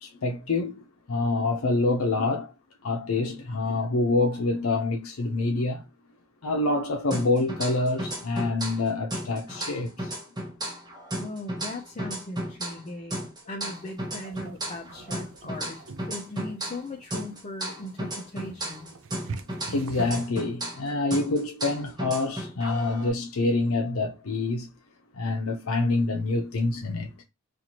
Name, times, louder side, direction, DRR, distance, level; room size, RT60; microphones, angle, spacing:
voice 1, 0.0-2.5 2.8-5.8 6.4-10.1 19.7-24.7 25.1-27.2, left 2 dB, 75° left, 0.6 m, -26 dB
sound 1, 7.1-8.8 9.1-12.8 13.1-16.9 17.1-20.8 21.1-23.1, right 1 dB, 20° right, 0.9 m, -34 dB
voice 2, 11.2-15.8 16.1-18.9, left 1 dB, 30° left, 0.6 m, -39 dB
sound 2, 13.8-20.3, right 4 dB, 65° right, 0.4 m, -44 dB
4.4 x 2.5 x 2.9 m
head